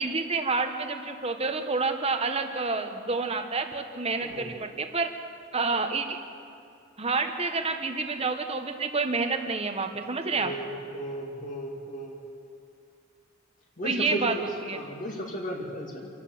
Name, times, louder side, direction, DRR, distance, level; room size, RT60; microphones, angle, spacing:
voice 1, 0.0-5.1 5.5-6.2 7.0-10.5 13.8-14.3 14.7-14.8, right 4 dB, 30° right, 6 dB, 1.3 m, -28 dB
voice 2, 10.3-12.2 13.8-16.1, right 1 dB, 40° left, -2 dB, 2.5 m, -35 dB
27.0 x 12.0 x 8.1 m, 2.4 s
head